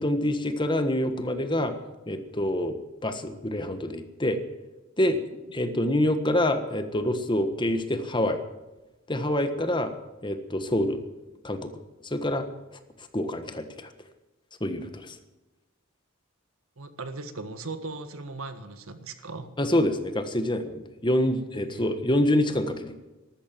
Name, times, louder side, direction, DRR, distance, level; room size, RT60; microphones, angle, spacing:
voice 1, 0.0-1.7 2.1-2.8 3.0-4.4 5.0-8.4 9.1-9.9 10.2-11.0 11.4-11.7 12.0-12.4 13.1-13.9 14.6-15.2 19.6-23.0, left 1 dB, 20° left, 9 dB, 1.4 m, -26 dB
voice 2, 16.8-19.5 21.5-22.0, right 3 dB, 85° right, 10 dB, 1.6 m, -38 dB
14.0 x 13.0 x 7.6 m, 1.1 s
head